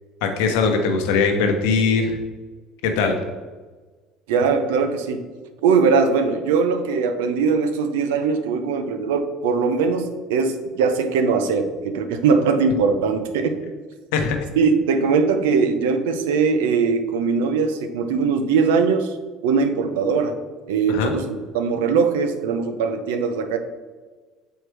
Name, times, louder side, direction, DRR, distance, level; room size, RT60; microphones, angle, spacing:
voice 1, 0.2-2.2 2.8-3.1 14.1-14.4 20.9-21.1, left 5 dB, 80° left, 4 dB, 0.9 m, -20 dB
voice 2, 4.3-5.3 5.6-13.6 14.6-19.2 19.4-20.4 20.7-23.6, right 5 dB, 90° right, 8 dB, 0.6 m, -21 dB
6.4 x 4.6 x 3.2 m, 1.4 s
supercardioid pair, 85°, 0 cm